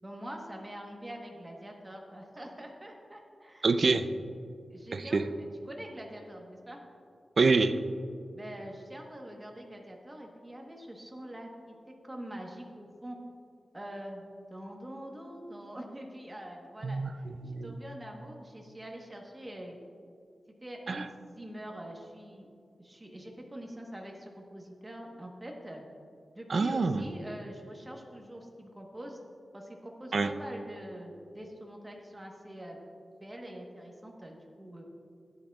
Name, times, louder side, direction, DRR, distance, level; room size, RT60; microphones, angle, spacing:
voice 1, 0.0-3.7 4.7-6.8 8.3-11.7 12.0-13.2 13.7-14.2 14.5-17.2 17.6-19.8 20.6-22.5 22.8-25.8 26.3-29.2 29.5-32.8 33.2-34.8, right 1 dB, 15° right, 0 dB, 1.1 m, -44 dB
voice 2, 3.6-4.1 4.9-5.2 7.4-7.7 16.8-17.8 20.9-21.1 26.5-27.0 30.1-30.3, right 4 dB, 50° right, 11 dB, 0.4 m, -26 dB
12.0 x 10.0 x 2.3 m, 2.4 s
wide cardioid pair, 150°, 0 cm